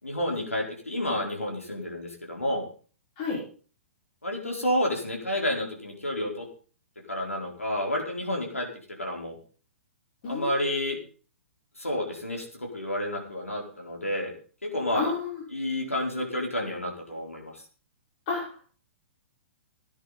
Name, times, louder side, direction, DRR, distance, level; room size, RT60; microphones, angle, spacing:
voice 1, 0.0-2.7 4.2-6.5 7.1-8.7 9.0-9.4 10.3-11.0 11.8-14.3 14.6-15.1 15.5-17.6, left 1 dB, 85° left, 1 dB, 4.4 m, -30 dB
voice 2, 10.2-10.8 14.9-15.4 18.3-18.4, left 4 dB, 40° left, -2 dB, 5.6 m, -30 dB
17.5 x 10.0 x 4.1 m, 0.39 s
figure-of-eight pair, 115°, 7 cm